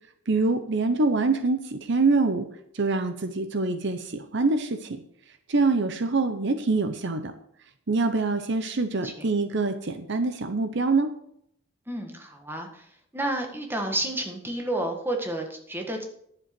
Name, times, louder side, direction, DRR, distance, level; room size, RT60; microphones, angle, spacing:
voice 1, 0.3-2.5 2.7-5.0 5.5-7.3 7.9-11.1, right 3 dB, 60° right, 9 dB, 0.8 m, -25 dB
voice 2, 11.9-12.9 13.1-16.0, right 1 dB, 10° right, 3 dB, 1.7 m, -30 dB
11.0 x 7.5 x 6.0 m, 0.71 s
head